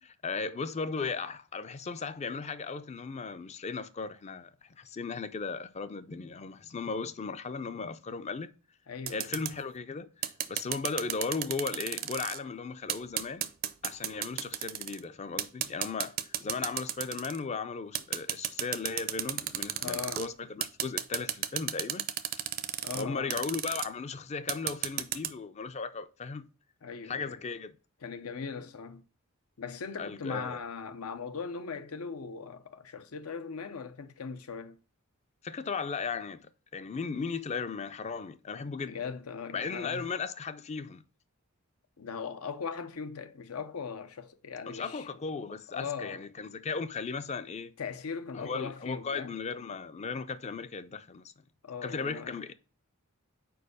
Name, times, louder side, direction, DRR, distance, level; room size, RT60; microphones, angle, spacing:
voice 1, 0.0-8.5 9.1-10.1 10.5-13.5 13.8-22.1 22.9-26.5 27.0-27.7 30.0-30.6 35.4-39.0 39.5-41.0 44.7-47.7 48.3-51.3 51.8-52.5, left 4 dB, 30° left, 0.4 m, -36 dB
voice 2, 8.9-9.4 19.8-20.3 22.8-23.4 26.8-27.4 28.0-29.0 29.6-34.8 38.6-40.1 42.0-45.1 45.7-46.2 47.8-49.3 51.6-52.4, left 5 dB, 80° left, 0.6 m, -39 dB
sound 1, 9.1-9.5 10.2-12.4 12.9-15.0 15.4-17.4 17.9-20.3 20.6-23.0 23.3-23.9 24.5-25.3, right 11 dB, 45° right, 0.5 m, -33 dB
4.6 x 4.6 x 4.9 m
head